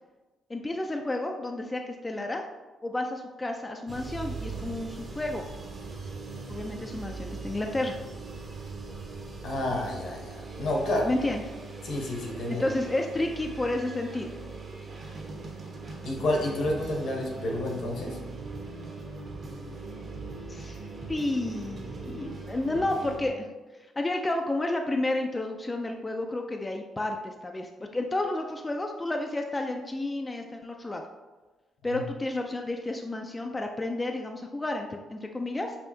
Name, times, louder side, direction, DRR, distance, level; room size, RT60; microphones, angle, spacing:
voice 1, 0.5-2.4 2.8-5.4 6.5-8.0 11.0-11.4 12.5-14.3 20.5-20.8 21.1-23.5 24.0-31.0 31.8-35.8, left 2 dB, 20° left, 3 dB, 0.3 m, -31 dB
sound 1, 3.9-23.3, right 4 dB, 30° right, 0.8 m, -41 dB
voice 2, 9.4-11.1 11.8-12.7 16.0-18.2 31.9-32.0, left 1 dB, 70° left, 0 dB, 1.0 m, -30 dB
sound 2, 10.4-23.2, right 1 dB, 50° right, 1.1 m, -45 dB
5.5 x 2.6 x 2.7 m, 1.2 s
cardioid pair, 90°, 0 cm